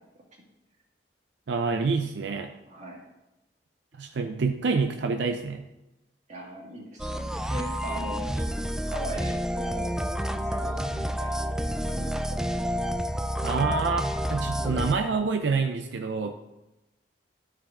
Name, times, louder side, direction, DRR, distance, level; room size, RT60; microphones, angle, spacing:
voice 1, 1.5-2.5 4.0-5.7 13.4-14.0 14.3-16.3, right 4 dB, 85° right, 6 dB, 0.5 m, -27 dB
voice 2, 2.7-3.0 6.3-9.9 10.3-12.5, right 1 dB, 45° right, -2 dB, 2.1 m, -40 dB
sound 1, 7.0-14.9, equal, 5° right, 0.3 m, -29 dB
12.5 x 4.9 x 3.6 m, 0.96 s
head